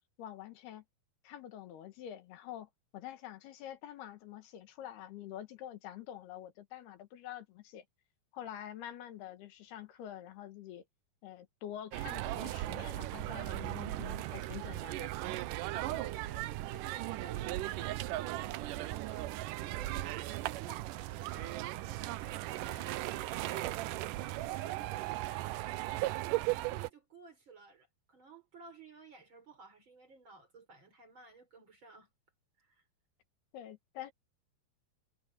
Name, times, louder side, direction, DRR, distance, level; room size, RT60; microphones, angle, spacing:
voice 1, 0.2-0.8 1.2-7.9 8.3-10.8 11.2-15.1 33.5-34.1, left 11 dB, 80° left, 3.6 m, -47 dB
sound 1, 11.9-26.9, right 16 dB, 85° right, 1.9 m, -37 dB
voice 2, 15.6-19.3 19.6-32.1 32.6-32.8, right 5 dB, 30° right, 4.4 m, -55 dB
omnidirectional pair, 4.5 m